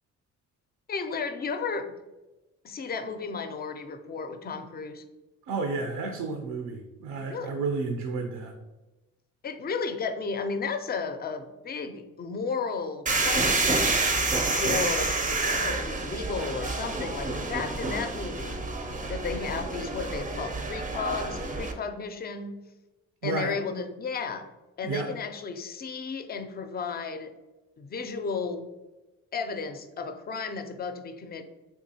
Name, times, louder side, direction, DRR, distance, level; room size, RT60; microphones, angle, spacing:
voice 1, 0.9-1.9 2.6-5.0 7.2-7.6 9.4-14.0 14.6-15.2 15.5-18.6 19.1-22.5 23.2-24.5 24.8-27.3 27.8-28.7 29.3-31.4, left 5 dB, 35° left, 8 dB, 0.4 m, -33 dB
voice 2, 5.5-8.5 23.2-23.8 24.8-25.1, right 4 dB, 80° right, 3 dB, 0.5 m, -31 dB
sound 1, 13.1-21.7, right 3 dB, 25° right, 0.5 m, -28 dB
3.5 x 2.9 x 2.7 m, 1.1 s
cardioid pair, 90°, 30 cm